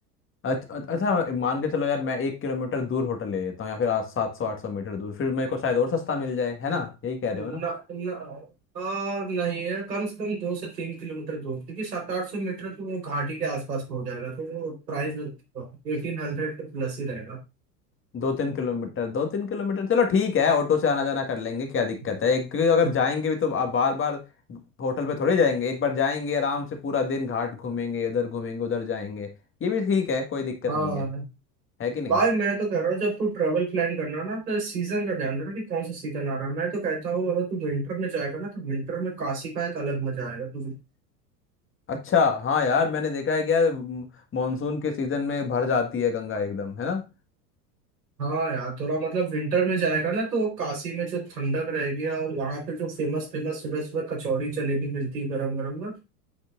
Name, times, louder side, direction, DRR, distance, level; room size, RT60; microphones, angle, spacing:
voice 1, 0.4-7.6 18.1-24.2 24.5-29.3 29.6-31.0 31.8-32.1 41.9-44.1 44.3-47.0, left 5 dB, 25° left, 1.8 m, -26 dB
voice 2, 7.3-8.5 8.7-17.4 22.8-22.9 30.7-31.2 32.1-40.8 48.2-56.0, right 4 dB, 80° right, 4.3 m, -29 dB
8.7 x 6.3 x 2.5 m
figure-of-eight pair, 80°, 48 cm